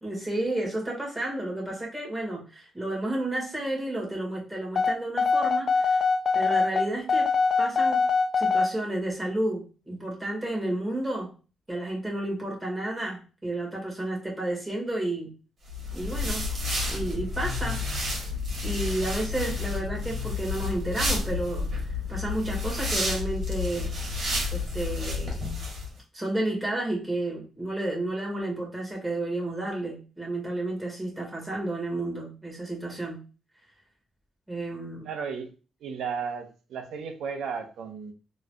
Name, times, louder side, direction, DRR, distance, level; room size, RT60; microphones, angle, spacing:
voice 1, 0.0-6.0 6.3-8.1 8.4-11.3 11.7-15.3 15.9-16.5 16.9-17.8 18.6-21.7 22.1-23.9 24.5-25.4 26.1-33.2 34.5-35.1, right 1 dB, 10° right, -3 dB, 1.8 m, -31 dB
sound 1, 4.8-8.7, left 4 dB, 40° left, 0.4 m, -23 dB
sound 2, 15.7-25.9, left 3 dB, 50° right, 1.8 m, -30 dB
voice 2, 35.0-35.5 35.8-38.1, right 6 dB, 75° right, 6 dB, 0.7 m, -34 dB
3.7 x 3.1 x 2.3 m, 0.33 s
cardioid pair, 90°, 0 cm